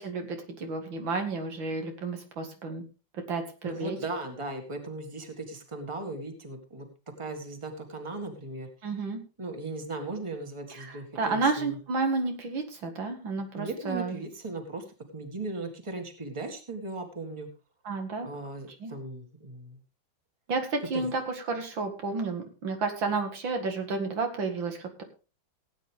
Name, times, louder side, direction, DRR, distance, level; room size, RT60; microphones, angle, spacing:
voice 1, 0.0-2.8 3.3-4.0 8.8-9.2 11.2-14.1 17.9-18.3 18.8-18.9 20.5-21.2 21.5-24.8, right 3 dB, 80° right, 4 dB, 2.7 m, -31 dB
voice 2, 3.6-6.9 7.2-8.7 9.4-11.8 13.6-14.9 15.1-17.5 18.2-19.8 20.9-21.2, right 2 dB, 15° right, 5 dB, 1.9 m, -37 dB
17.5 x 9.1 x 3.5 m, 0.33 s
omnidirectional pair, 2.1 m